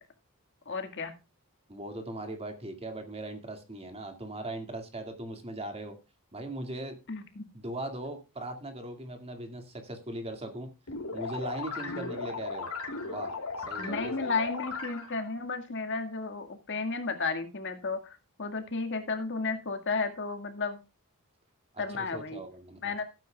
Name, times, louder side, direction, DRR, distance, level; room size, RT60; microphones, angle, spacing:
voice 1, 0.7-1.1 7.1-7.5 11.8-12.1 13.8-18.0 18.4-20.8 21.8-22.4 22.8-23.0, left 4 dB, 55° left, 6 dB, 1.9 m, -33 dB
voice 2, 1.7-6.0 6.3-7.0 7.5-10.7 11.1-12.7 13.0-14.4 21.7-22.9, right 1 dB, 30° right, 5 dB, 2.1 m, -39 dB
sound 1, 10.9-15.3, left 3 dB, 80° left, 2.8 m, -37 dB
16.5 x 9.1 x 2.3 m, 0.28 s
head